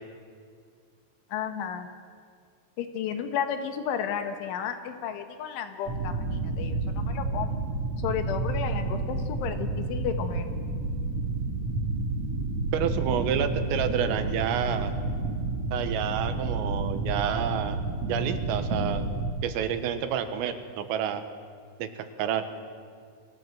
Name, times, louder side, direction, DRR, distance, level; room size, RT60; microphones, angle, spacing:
voice 1, 1.3-1.9 2.8-7.6 8.0-10.5, left 8 dB, 70° left, 7 dB, 3.7 m, -33 dB
sound 1, 5.9-19.3, right 2 dB, 45° right, 2.4 m, -30 dB
voice 2, 12.7-14.9 15.7-17.8 18.1-19.1 19.4-21.2 21.8-21.9 22.2-22.5, right 9 dB, 80° right, 9 dB, 4.0 m, -29 dB
30.0 x 23.0 x 7.9 m, 2.1 s
omnidirectional pair, 6.0 m